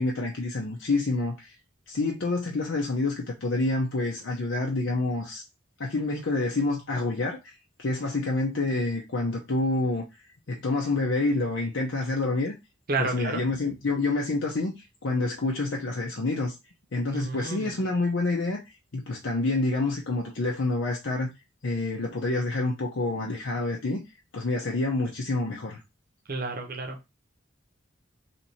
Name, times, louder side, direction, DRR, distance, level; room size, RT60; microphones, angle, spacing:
voice 1, 0.0-1.5 1.9-5.4 5.8-10.0 10.5-12.5 13.0-16.6 16.9-18.6 18.9-21.3 21.6-24.0 24.3-25.8, left 2 dB, 70° left, 0.7 m, -28 dB
voice 2, 12.9-13.4 17.1-17.8 26.3-27.0, right 3 dB, 45° right, 0.8 m, -30 dB
3.3 x 3.0 x 4.1 m
head